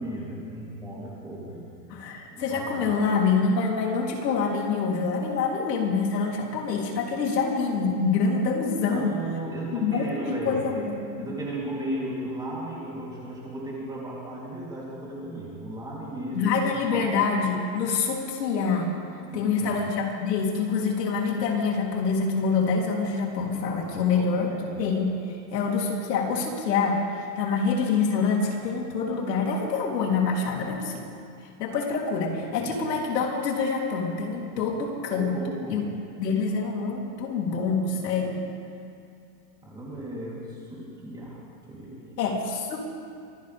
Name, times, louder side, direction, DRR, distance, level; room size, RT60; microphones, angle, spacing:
voice 1, 0.0-1.6 2.3-3.0 8.8-10.9 11.2-16.5 16.9-17.1 19.3-19.8 24.1-24.7 31.6-31.8 32.4-32.8 35.1-35.8 39.6-41.4 41.7-42.2, right 1 dB, 10° right, -6 dB, 3.5 m, -35 dB
voice 2, 1.9-9.1 9.7-11.0 16.3-18.9 19.3-24.5 24.8-27.0 27.4-31.0 31.6-35.4 35.7-35.8 36.2-38.4 42.2-42.9, left 5 dB, 75° left, -1 dB, 3.6 m, -26 dB
25.0 x 15.5 x 3.6 m, 2.6 s
supercardioid pair, 165°, 50 cm